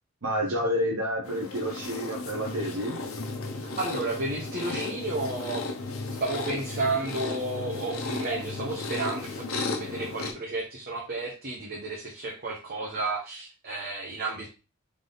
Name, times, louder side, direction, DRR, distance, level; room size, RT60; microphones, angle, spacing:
voice 1, 0.2-3.0, equal, 75° right, -1 dB, 1.0 m, -29 dB
sound 1, 1.2-10.3, left 3 dB, 90° left, 0.9 m, -34 dB
voice 2, 3.6-5.7 6.2-14.5, right 2 dB, 45° right, -2 dB, 1.0 m, -32 dB
3.7 x 3.5 x 3.9 m, 0.31 s
head